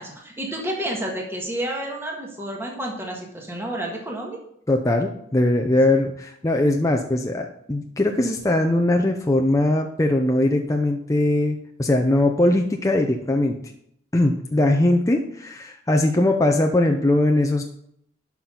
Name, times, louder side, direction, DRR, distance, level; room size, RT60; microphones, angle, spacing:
voice 1, 0.0-4.4, right 1 dB, 15° right, -1 dB, 1.6 m, -30 dB
voice 2, 4.7-13.5 14.1-17.6, left 1 dB, 15° left, 2 dB, 0.6 m, -20 dB
11.5 x 5.9 x 3.8 m, 0.71 s
head